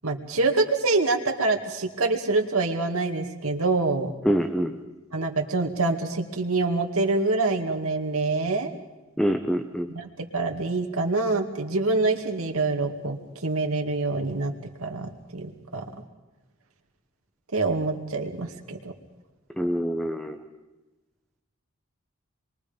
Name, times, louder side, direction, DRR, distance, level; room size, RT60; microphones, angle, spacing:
voice 1, 0.0-4.1 5.1-8.7 9.9-14.5 14.8-15.8 17.5-18.9, right 3 dB, 85° right, 4 dB, 2.3 m, -26 dB
voice 2, 4.2-4.8 9.2-9.9 19.6-20.4, equal, 5° left, 6 dB, 0.8 m, -25 dB
27.5 x 22.5 x 5.3 m, 1.1 s
head